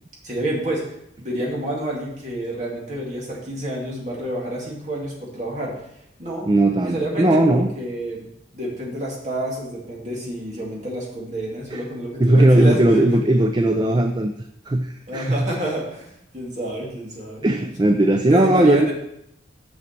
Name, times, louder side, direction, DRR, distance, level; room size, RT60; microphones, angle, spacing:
voice 1, 0.2-5.7 6.2-6.5 6.8-8.3 8.5-13.2 15.1-17.5 18.3-18.9, right 1 dB, 40° right, -4 dB, 2.2 m, -29 dB
voice 2, 6.5-7.7 11.7-11.8 12.2-14.3 14.7-15.5 17.4-18.9, right 1 dB, 25° right, 5 dB, 0.4 m, -17 dB
6.7 x 6.4 x 4.4 m, 0.78 s
head